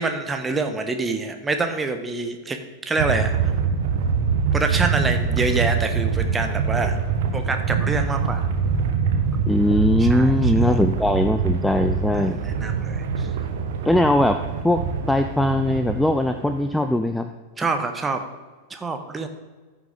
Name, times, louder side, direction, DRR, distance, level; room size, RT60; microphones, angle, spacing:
voice 1, 0.0-2.6 2.8-3.3 4.5-7.0 7.3-8.5 10.0-10.7 12.1-13.3 17.6-18.2 18.7-19.3, right 3 dB, 15° right, 6 dB, 1.1 m, -26 dB
sound 1, 3.0-16.9, right 6 dB, 55° right, 1.2 m, -24 dB
voice 2, 9.5-12.4 13.8-17.3, left 1 dB, 5° left, 8 dB, 0.4 m, -20 dB
14.0 x 6.2 x 3.9 m, 1.3 s
figure-of-eight pair, 90°, 0 cm